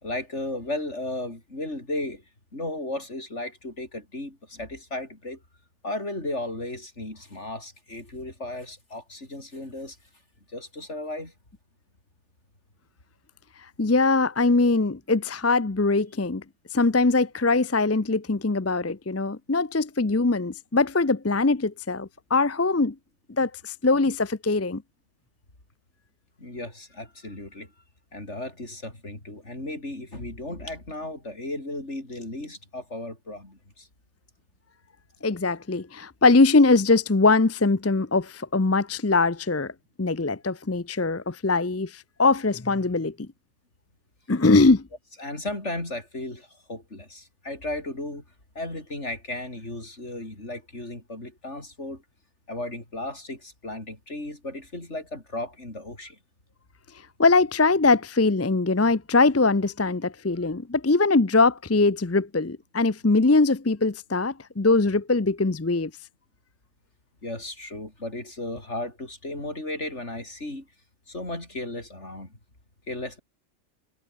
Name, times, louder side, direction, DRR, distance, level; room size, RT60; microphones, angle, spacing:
voice 1, 0.0-2.2 2.5-5.4 5.8-10.0 10.5-11.3 26.4-27.7 28.1-33.9 45.2-48.2 48.5-52.0 52.5-56.2 67.2-70.7 71.1-72.4 72.9-73.2, left 2 dB, 55° left, 6.7 m, -35 dB
voice 2, 13.8-16.4 16.7-22.9 23.4-24.8 35.2-39.7 40.0-43.3 44.3-44.8 57.2-65.9, left 3 dB, 20° left, 0.5 m, -22 dB
omnidirectional pair, 1.5 m